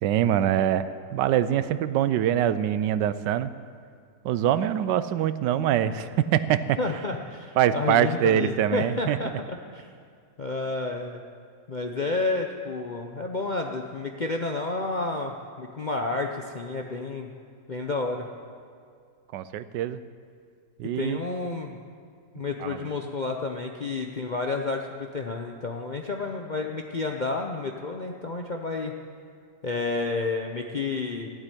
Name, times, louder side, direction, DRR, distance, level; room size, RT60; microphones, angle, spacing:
voice 1, 0.0-3.5 4.2-6.8 7.6-9.2 19.3-20.0 20.8-21.2 22.6-22.8, right 10 dB, 85° right, 13 dB, 1.3 m, -24 dB
voice 2, 6.8-9.9 10.4-11.2 11.7-17.3 17.7-18.3 20.9-21.8 22.3-28.9 29.6-31.3, left 3 dB, 50° left, 2 dB, 0.5 m, -30 dB
14.5 x 7.9 x 9.8 m, 2.2 s
omnidirectional pair, 1.9 m